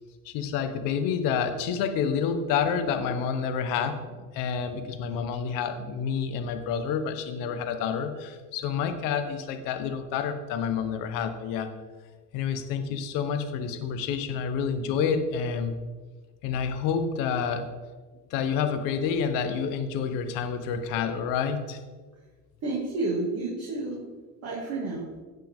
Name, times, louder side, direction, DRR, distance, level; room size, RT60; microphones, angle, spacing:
voice 1, 0.2-4.0 4.3-11.7 12.3-15.8 16.4-17.7 18.3-21.8, left 6 dB, 70° left, 8 dB, 1.1 m, -28 dB
voice 2, 22.6-24.0 24.4-25.1, right 2 dB, 45° right, -4 dB, 2.4 m, -30 dB
16.5 x 5.7 x 3.6 m, 1.4 s
cardioid pair, 135°, 34 cm